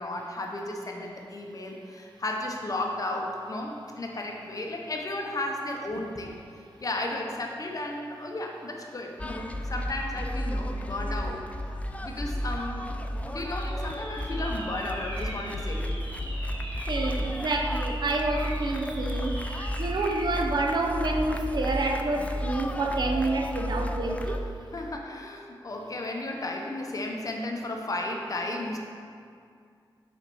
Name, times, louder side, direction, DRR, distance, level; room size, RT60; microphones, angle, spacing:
voice 1, 0.0-6.3 6.8-11.4 12.0-12.9 13.3-16.0 24.7-28.8, left 2 dB, 40° left, 1 dB, 0.8 m, -34 dB
sound 1, 9.2-24.4, equal, 15° left, 0.3 m, -33 dB
sound 2, 13.4-20.4, equal, 80° right, 1.6 m, -41 dB
voice 2, 16.9-24.4, right 2 dB, 55° right, 3 dB, 0.6 m, -28 dB
5.6 x 4.4 x 5.5 m, 2.3 s
wide cardioid pair, 100°, 9 cm